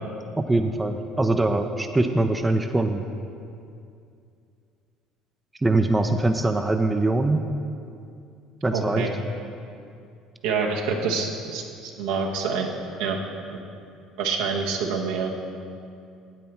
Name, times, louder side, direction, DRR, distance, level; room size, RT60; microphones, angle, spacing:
voice 1, 0.4-3.0 5.6-7.4 8.6-9.0, right 2 dB, 15° right, 6 dB, 0.6 m, -22 dB
voice 2, 8.7-9.1 10.4-12.7 13.0-13.2 13.5-13.6 14.2-15.3, right 5 dB, 75° right, 0 dB, 1.1 m, -26 dB
8.9 x 8.3 x 4.4 m, 2.5 s
hypercardioid pair, 65°, 0 cm